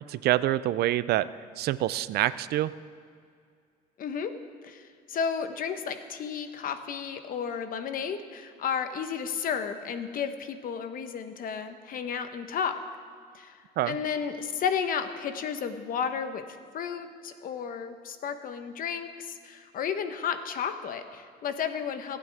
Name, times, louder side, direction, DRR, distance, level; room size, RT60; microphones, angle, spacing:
voice 1, 0.1-1.3 1.6-2.7 13.8-14.0, right 14 dB, 70° right, 16 dB, 0.5 m, -26 dB
voice 2, 4.0-4.3 4.6-12.8 13.3-13.6 13.8-22.2, left 7 dB, 55° left, 8 dB, 1.1 m, -33 dB
26.5 x 9.1 x 3.5 m, 2.3 s
cardioid pair, 110°, 17 cm